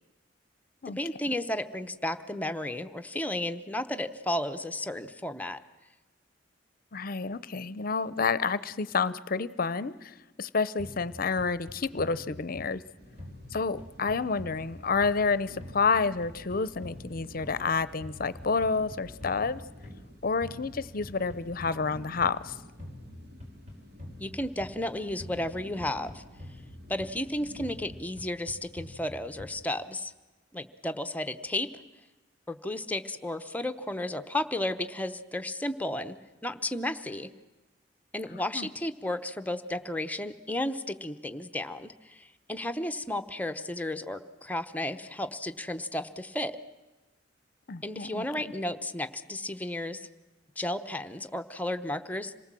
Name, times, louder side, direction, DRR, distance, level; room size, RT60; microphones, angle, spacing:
voice 1, 0.9-5.6 24.2-26.2 26.9-30.1 30.5-31.7 32.5-36.2 36.4-37.3 38.1-46.6 47.8-50.1 50.6-52.3, left 1 dB, 10° left, 8 dB, 0.9 m, -33 dB
voice 2, 6.9-12.8 13.5-19.6 20.2-22.6 38.5-38.7 47.7-48.2, left 4 dB, 50° left, 17 dB, 0.7 m, -29 dB
sound 1, 10.8-12.9 13.2-15.3 15.6-17.7 18.0-20.1 20.4-22.4 22.8-24.9 25.2-27.3 27.6-29.7, left 1 dB, 40° right, 4.7 m, -46 dB
sound 2, 13.0-28.0, left 1 dB, 60° right, 3.7 m, -50 dB
27.0 x 19.0 x 7.6 m, 1.1 s
head